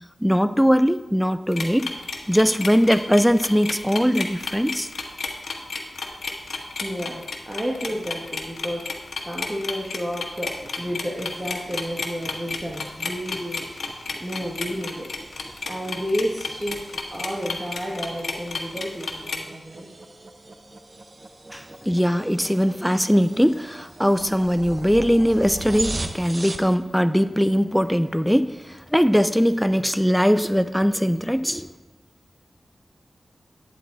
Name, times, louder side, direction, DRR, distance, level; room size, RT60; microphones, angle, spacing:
voice 1, 0.2-1.9 2.3-4.9 21.5-31.7, equal, ahead, 12 dB, 0.6 m, -20 dB
sound 1, 1.5-19.4, left 4 dB, 85° left, 1.4 m, -31 dB
voice 2, 6.8-13.6 14.2-15.1 15.6-16.8 17.1-19.9, equal, 20° right, -2 dB, 1.9 m, -31 dB
sound 2, 10.4-26.7, right 2 dB, 45° right, 1.1 m, -40 dB
11.0 x 9.3 x 4.2 m, 1.0 s
cardioid pair, 50°, 0 cm